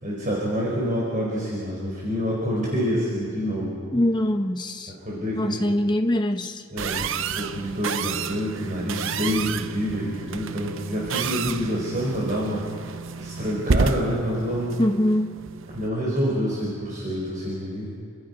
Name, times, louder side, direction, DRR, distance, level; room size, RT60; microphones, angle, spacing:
voice 1, 0.0-3.8 5.0-5.6 6.7-7.1 7.3-12.6 13.2-14.8 15.7-17.9, equal, 35° right, -5 dB, 5.0 m, -27 dB
voice 2, 3.9-4.9 5.3-6.6 14.8-15.3, left 1 dB, 20° left, 5 dB, 1.1 m, -23 dB
sound 1, 6.8-15.9, right 5 dB, 60° right, 0.7 m, -30 dB
28.5 x 27.0 x 5.5 m, 2.2 s
head